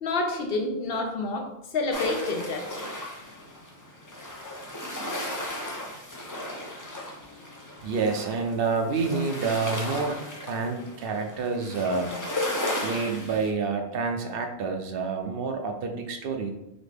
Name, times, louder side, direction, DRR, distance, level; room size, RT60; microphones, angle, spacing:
voice 1, 0.0-2.8, left 3 dB, 65° left, 4 dB, 0.9 m, -28 dB
sound 1, 1.9-13.5, left 1 dB, 20° left, 0.6 m, -35 dB
voice 2, 7.8-12.1 12.8-16.5, right 4 dB, 65° right, 4 dB, 0.8 m, -28 dB
4.0 x 3.6 x 3.4 m, 0.90 s
omnidirectional pair, 1.1 m